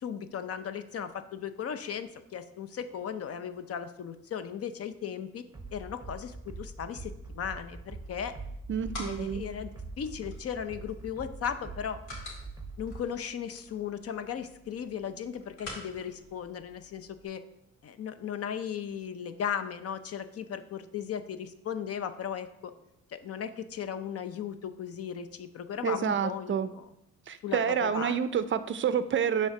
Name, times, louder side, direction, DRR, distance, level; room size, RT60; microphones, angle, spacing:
voice 1, 0.0-5.4 5.7-8.3 9.0-9.7 10.0-12.0 12.8-17.4 17.8-22.7 23.1-26.9 27.4-28.2, left 8 dB, 50° left, 10 dB, 0.6 m, -36 dB
sound 1, 5.5-13.0, right 3 dB, 10° right, 0.7 m, -43 dB
sound 2, 8.3-17.2, left 1 dB, 85° left, 2.0 m, -49 dB
voice 2, 8.7-9.5 25.8-26.7 27.3-29.5, right 8 dB, 40° right, 12 dB, 0.4 m, -28 dB
7.0 x 3.4 x 5.8 m, 0.80 s
cardioid pair, 90°, 30 cm